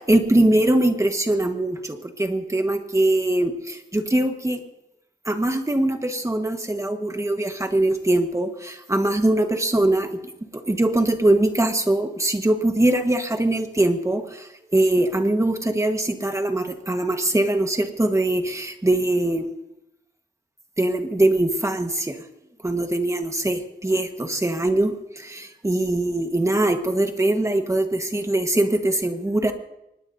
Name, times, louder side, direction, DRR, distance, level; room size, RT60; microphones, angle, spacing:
voice 1, 0.0-4.6 5.3-10.1 10.7-14.2 14.7-19.5 20.8-22.1 22.6-24.9 25.2-29.5, right 1 dB, 15° right, 6 dB, 1.4 m, -22 dB
24.5 x 20.0 x 2.7 m, 0.86 s
wide cardioid pair, 130°, 19 cm